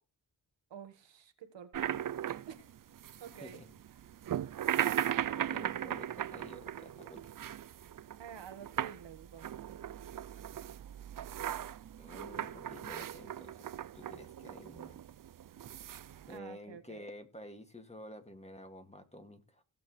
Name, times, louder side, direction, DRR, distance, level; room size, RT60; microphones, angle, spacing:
voice 1, 0.7-1.9 2.5-2.7 3.2-3.6 8.2-10.3 16.3-17.0, right 8 dB, 85° right, 1.7 m, -50 dB
sound 1, 1.7-16.4, right 10 dB, 50° right, 0.6 m, -38 dB
voice 2, 3.4-3.7 5.3-7.4 12.0-13.6 13.9-15.0 16.3-19.6, left 1 dB, 15° left, 2.3 m, -50 dB
16.5 x 6.9 x 3.3 m
cardioid pair, 65°, 43 cm